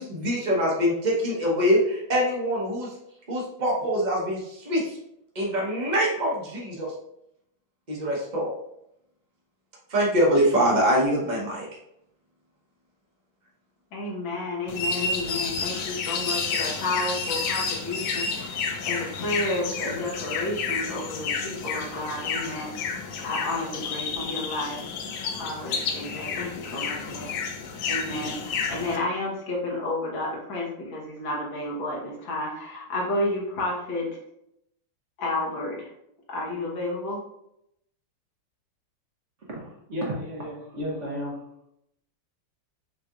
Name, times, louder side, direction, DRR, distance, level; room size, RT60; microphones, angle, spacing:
voice 1, 0.0-2.9 3.3-5.0 5.3-6.9 7.9-8.5 9.9-11.7, equal, 80° right, -4 dB, 0.4 m, -24 dB
voice 2, 13.9-24.9 25.4-27.4 27.9-34.1 35.2-35.9 36.3-37.2, left 2 dB, 65° left, -4 dB, 1.9 m, -31 dB
sound 1, 14.7-29.0, left 5 dB, 90° left, 1.6 m, -30 dB
voice 3, 39.5-41.4, equal, 50° right, -3 dB, 0.8 m, -33 dB
6.5 x 2.8 x 2.4 m, 0.78 s
omnidirectional pair, 2.4 m